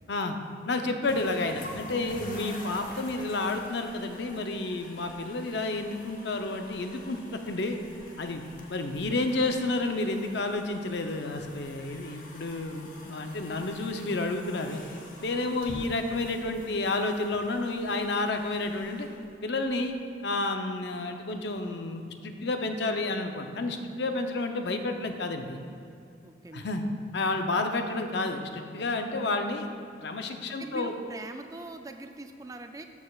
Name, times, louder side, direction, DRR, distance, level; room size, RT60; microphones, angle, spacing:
voice 1, 0.7-7.8 8.2-8.4 8.7-14.8 15.2-19.1 19.4-20.0 20.2-25.6 26.5-26.8 27.1-29.7 30.0-30.9, left 2 dB, 70° left, 5 dB, 0.6 m, -30 dB
sound 1, 1.0-19.9, left 1 dB, 45° left, 1.0 m, -47 dB
voice 2, 15.5-15.9 26.2-26.7 30.5-32.8, right 2 dB, 20° right, 6 dB, 0.3 m, -42 dB
14.0 x 6.5 x 2.4 m, 2.5 s
head